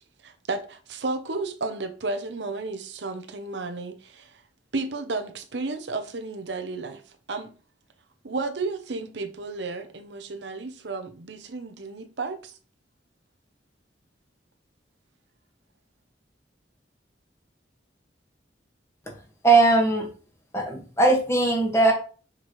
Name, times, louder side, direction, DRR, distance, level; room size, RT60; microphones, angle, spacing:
voice 1, 0.2-4.4 4.7-7.0 7.3-7.5 8.2-12.6, right 3 dB, 75° right, 0.8 m, -32 dB
voice 2, 19.4-20.1 20.5-21.9, right 2 dB, 15° left, 1.8 m, -19 dB
6.1 x 6.0 x 3.2 m
head